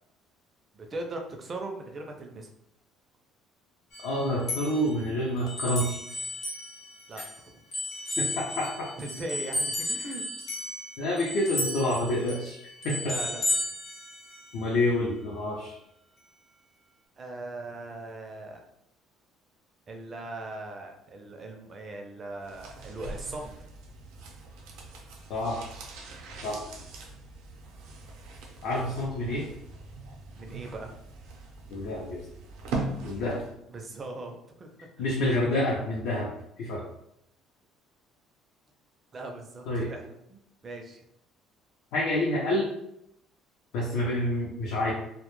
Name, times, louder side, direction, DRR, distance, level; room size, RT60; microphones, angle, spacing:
voice 1, 0.7-2.5 7.1-7.5 9.0-10.2 13.0-13.4 17.2-18.6 19.9-23.6 30.4-30.9 33.7-34.7 35.0-35.3 39.1-40.0 40.3-41.0, right 2 dB, 25° right, 3 dB, 0.4 m, -39 dB
sound 1, 3.9-7.4 7.7-14.6, left 1 dB, 45° left, 0.8 m, -34 dB
voice 2, 4.0-6.0 8.2-8.9 11.0-12.6 12.8-13.1 14.5-15.8 25.3-25.6 26.4-26.6 28.6-29.5 31.7-32.2 33.0-33.4 35.0-36.3 36.6-36.8 39.7-39.9 41.9-42.7 43.7-44.9, left 1 dB, 75° left, -4 dB, 0.5 m, -28 dB
sound 2, 22.4-33.6 33.9-34.0, right 2 dB, 85° right, 0.5 m, -41 dB
2.1 x 2.0 x 3.0 m, 0.78 s
cardioid pair, 160°, 0 cm